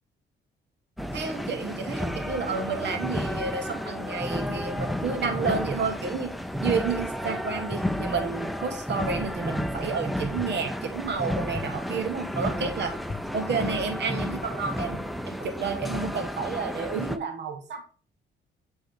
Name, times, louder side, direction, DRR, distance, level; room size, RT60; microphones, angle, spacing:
sound 1, 1.0-17.2, equal, ahead, 0.6 m, -32 dB
voice 1, 1.1-6.3 6.6-13.0 13.3-17.8, right 5 dB, 60° right, 7 dB, 1.3 m, -31 dB
Wind, 6.0-15.0, left 3 dB, 20° left, 0.9 m, -46 dB
7.7 x 4.0 x 3.5 m, 0.41 s
cardioid pair, 90°, 20 cm